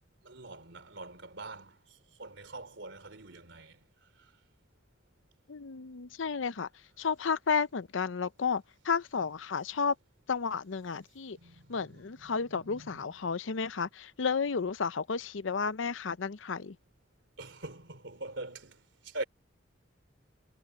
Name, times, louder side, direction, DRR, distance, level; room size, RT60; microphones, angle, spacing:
voice 1, 0.2-1.8 2.2-3.8 11.3-13.1 17.4-18.8 19.0-19.2, right 2 dB, 70° right, 3.0 m, -44 dB
voice 2, 5.5-6.7 7.0-10.0 10.3-11.4 11.7-16.8, left 5 dB, 85° left, 0.7 m, -32 dB
head